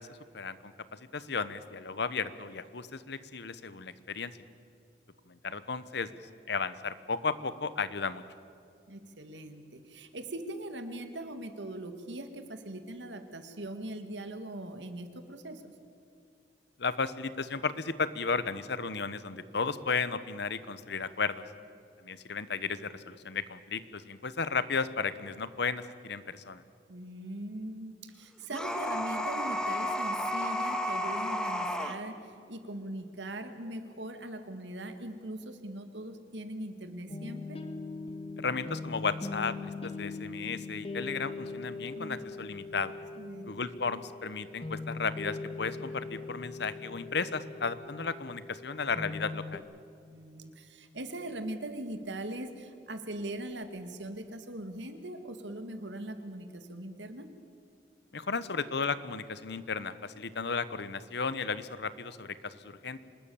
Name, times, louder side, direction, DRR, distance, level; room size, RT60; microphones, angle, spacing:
voice 1, 0.3-4.3 5.3-6.1 6.5-8.2 16.8-21.4 22.0-26.6 38.4-42.9 43.5-49.6 58.1-63.0, left 5 dB, 70° left, 15 dB, 1.0 m, -34 dB
voice 2, 8.9-15.7 26.9-37.6 41.9-42.2 43.2-43.5 50.1-57.3, right 1 dB, 85° right, 8 dB, 2.1 m, -41 dB
sound 1, 28.5-32.0, equal, 5° left, 1.6 m, -32 dB
sound 2, 37.1-49.6, left 3 dB, 35° left, 1.5 m, -41 dB
25.5 x 20.5 x 7.2 m, 2.5 s
head